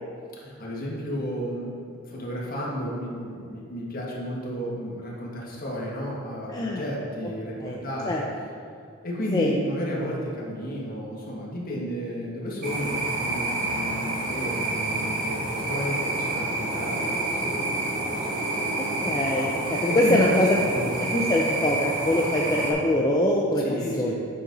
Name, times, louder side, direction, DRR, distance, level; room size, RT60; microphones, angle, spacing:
voice 1, 0.4-8.3 9.0-15.4 15.7-17.7 18.0-19.0 19.9-21.0 23.6-24.1, equal, 45° left, -4 dB, 1.5 m, -32 dB
voice 2, 6.5-6.8 7.6-7.8 8.1-8.2 9.3-9.5 19.0-20.5 21.1-23.6 23.9-24.1, left 1 dB, 20° left, -2 dB, 0.4 m, -23 dB
sound 1, 12.6-22.7, right 2 dB, 40° right, 1.1 m, -28 dB
7.6 x 5.2 x 3.9 m, 2.3 s
head